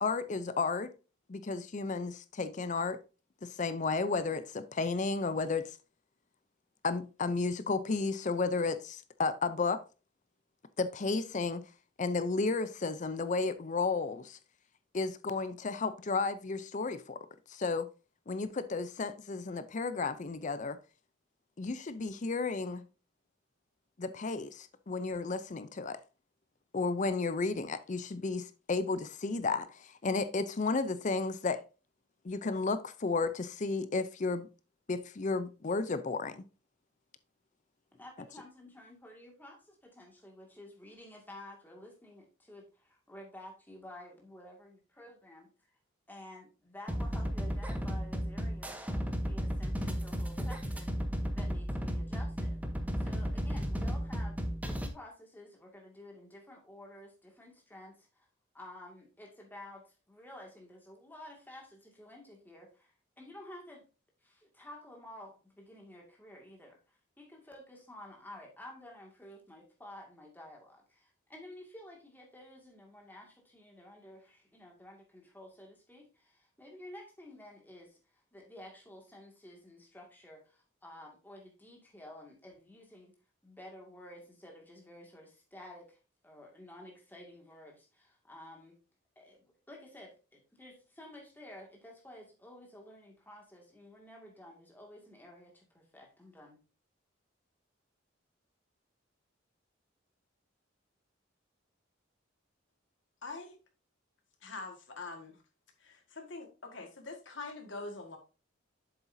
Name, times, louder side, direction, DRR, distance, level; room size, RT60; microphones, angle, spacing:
voice 1, 0.0-0.9 1.3-3.0 3.4-5.8 6.8-9.8 10.8-11.6 12.0-14.4 14.9-17.2 17.5-17.9 18.3-20.8 21.6-22.8 24.0-26.0 26.7-31.6 32.2-34.5 34.9-36.4, left 4 dB, 40° left, 0.5 m, -33 dB
voice 2, 38.0-45.8 46.1-52.6 53.0-58.3 58.5-63.9 64.2-83.2 83.4-88.8 89.2-96.6, left 1 dB, 10° left, 2.1 m, -52 dB
sound 1, 46.9-54.9, equal, 10° right, 0.8 m, -34 dB
voice 3, 103.2-103.6 104.4-105.4 105.8-108.2, left 3 dB, 65° left, 1.7 m, -44 dB
7.9 x 7.1 x 2.7 m
head